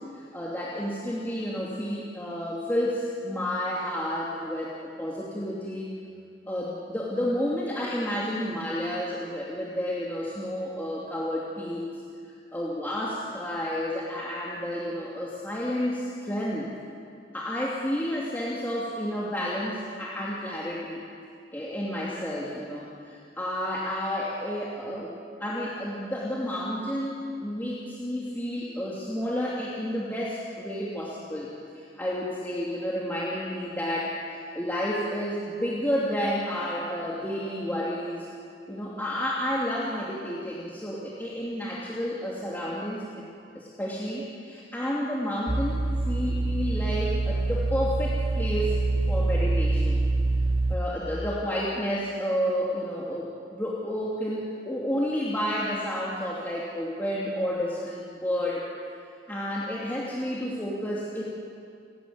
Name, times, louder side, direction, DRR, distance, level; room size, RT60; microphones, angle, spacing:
voice 1, 0.1-6.0 6.5-11.9 12.2-16.7 17.3-21.0 21.5-25.1 25.4-38.3 38.7-43.3 43.5-48.7 49.1-50.0 50.7-58.6 59.3-61.2, equal, 10° left, -6 dB, 2.7 m, -31 dB
sound 1, 45.5-50.8, right 2 dB, 30° right, 0.9 m, -25 dB
30.0 x 13.5 x 9.7 m, 2.4 s
head